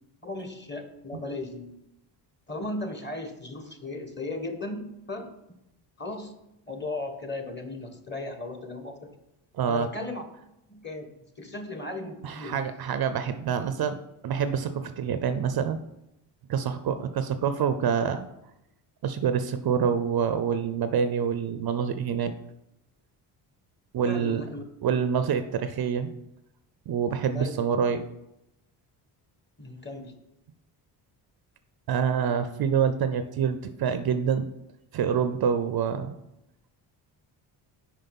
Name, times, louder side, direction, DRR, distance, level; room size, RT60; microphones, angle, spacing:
voice 1, 0.2-1.7 2.5-5.3 6.0-6.3 6.7-9.1 9.7-10.2 10.7-11.1 11.4-12.6 16.9-17.0 24.0-24.6 27.3-27.5 29.6-30.1, left 2 dB, 20° left, 6 dB, 1.4 m, -36 dB
voice 2, 9.5-9.9 12.2-14.0 14.2-15.8 16.5-18.3 19.0-22.3 23.9-24.4 24.8-26.1 26.9-28.0 31.9-34.5 34.9-36.2, right 7 dB, 50° right, 10 dB, 0.6 m, -26 dB
5.7 x 4.9 x 5.4 m, 0.86 s
supercardioid pair, 55°, 49 cm